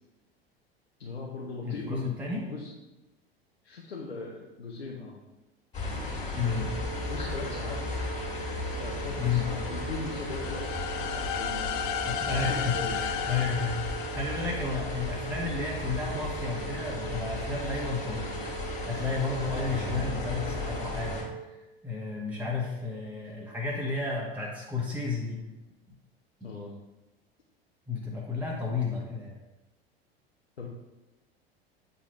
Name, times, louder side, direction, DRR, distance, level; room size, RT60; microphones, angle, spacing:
voice 1, 1.0-2.1 2.4-2.7 3.6-5.2 7.0-8.0 8.8-13.3 26.4-26.8 30.6-30.7, left 3 dB, 80° left, -3 dB, 0.9 m, -40 dB
voice 2, 1.6-2.5 6.3-6.7 9.2-9.5 12.0-18.4 18.8-21.5 21.8-25.4 25.9-26.0 27.9-29.4, left 4 dB, 5° right, -4 dB, 1.2 m, -32 dB
sound 1, 5.7-21.2, left 2 dB, 20° left, 2.2 m, -35 dB
sound 2, 6.4-21.5, right 9 dB, 25° right, 0.4 m, -42 dB
sound 3, 10.3-15.1, left 9 dB, 55° left, 0.5 m, -34 dB
8.6 x 4.2 x 3.1 m, 1.0 s
figure-of-eight pair, 80°, 31 cm